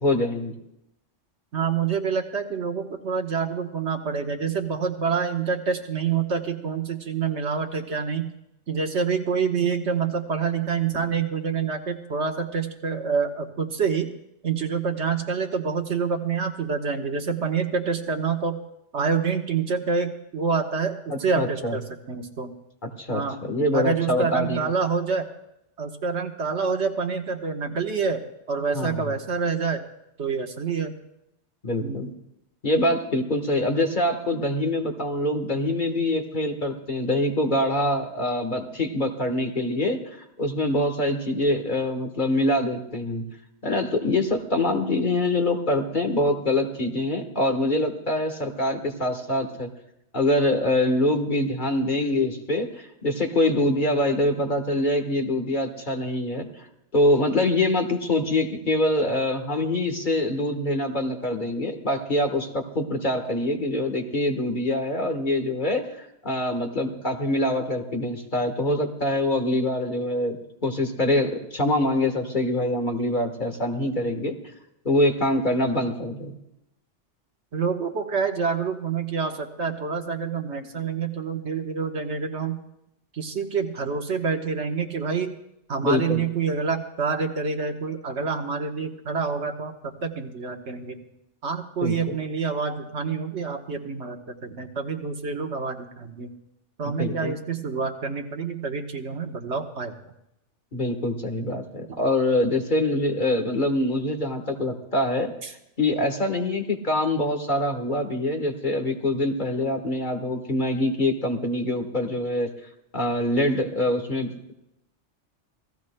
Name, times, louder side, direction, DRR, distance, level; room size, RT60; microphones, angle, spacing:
voice 1, 0.0-0.5 21.1-21.7 22.8-24.6 28.7-28.9 31.6-32.1 32.6-40.0 40.4-43.2 43.6-49.7 50.1-56.5 56.9-65.9 66.2-74.3 74.8-76.3 85.8-86.2 91.8-91.9 97.0-97.3 100.7-105.3 105.8-112.5 112.9-114.5, left 1 dB, 40° left, 5 dB, 1.5 m, -24 dB
voice 2, 1.5-8.3 8.7-14.1 14.4-18.6 18.9-21.8 22.1-22.5 23.1-23.4 23.7-25.3 25.8-28.2 28.5-29.8 30.2-30.9 31.8-32.1 77.5-82.6 83.1-85.4 85.7-91.0 91.4-96.3 96.8-99.9 105.4-105.5, right 5 dB, 65° right, 4 dB, 1.4 m, -27 dB
27.0 x 17.5 x 2.2 m, 0.83 s
omnidirectional pair, 1.2 m